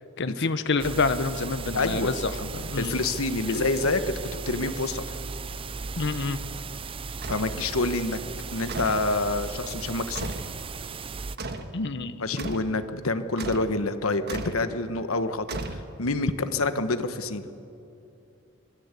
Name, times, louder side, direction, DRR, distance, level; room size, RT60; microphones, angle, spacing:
voice 1, 0.2-2.9 6.0-6.4 11.7-12.2, left 3 dB, 55° left, 11 dB, 0.9 m, -27 dB
sound 1, 0.8-11.4, right 4 dB, 25° right, 0.4 m, -36 dB
voice 2, 1.7-2.1 2.8-4.2 4.5-5.2 7.3-8.2 8.5-10.3 12.2-17.5, left 2 dB, 85° left, 10 dB, 1.3 m, -27 dB
sound 2, 7.2-7.6 8.7-9.1 10.1-10.5 11.4-11.7 12.4-12.7 13.4-13.8 14.3-14.6 15.5-16.1, right 2 dB, 50° right, 1.5 m, -35 dB
25.0 x 19.0 x 8.3 m, 2.7 s
head